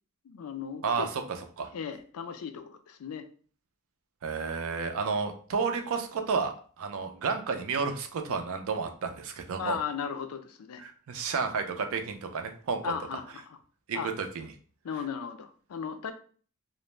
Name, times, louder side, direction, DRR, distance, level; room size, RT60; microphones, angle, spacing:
voice 1, 0.2-1.1 1.7-3.3 9.6-10.8 12.8-13.6 13.9-14.1 14.8-16.1, left 7 dB, 80° left, 8 dB, 0.4 m, -36 dB
voice 2, 4.2-9.8 10.8-12.9 13.9-14.5, right 5 dB, 65° right, 6 dB, 0.4 m, -31 dB
2.5 x 2.0 x 3.0 m, 0.43 s
head